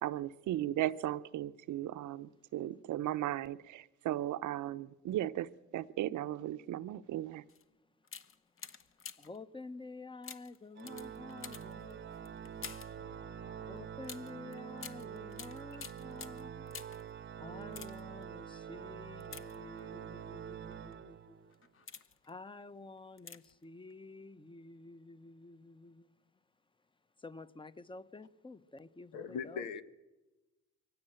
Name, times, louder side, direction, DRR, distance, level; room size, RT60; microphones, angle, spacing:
voice 1, 0.0-7.4, right 13 dB, 75° right, 0.8 m, -36 dB
sound 1, 7.5-7.6 8.0-9.4 10.2-13.0 14.0-17.1 17.6-18.2 19.2-20.0 20.7-20.9 21.5-22.3 23.2-23.6 23.9-24.0, left 6 dB, 45° left, 1.1 m, -50 dB
voice 2, 9.2-12.9 13.6-16.8 17.4-21.6 21.9-26.4 27.2-29.7, left 3 dB, 15° left, 0.9 m, -50 dB
Organ, 10.8-21.6, right 8 dB, 40° right, 0.8 m, -46 dB
voice 3, 13.0-13.8 15.8-15.9 29.1-29.8, left 6 dB, 90° left, 1.3 m, -43 dB
23.0 x 16.5 x 8.9 m
cardioid pair, 90°, 30 cm